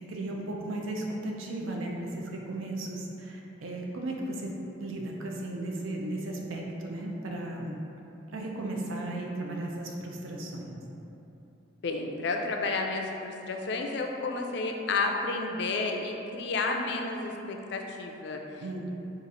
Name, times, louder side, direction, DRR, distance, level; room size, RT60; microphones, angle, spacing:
voice 1, 0.0-4.5 4.8-7.8 8.3-10.7 18.6-18.9, right 2 dB, 80° right, 0 dB, 0.5 m, -35 dB
voice 2, 11.8-18.4, left 3 dB, 55° left, 2 dB, 0.4 m, -31 dB
3.9 x 2.4 x 4.1 m, 3.0 s
head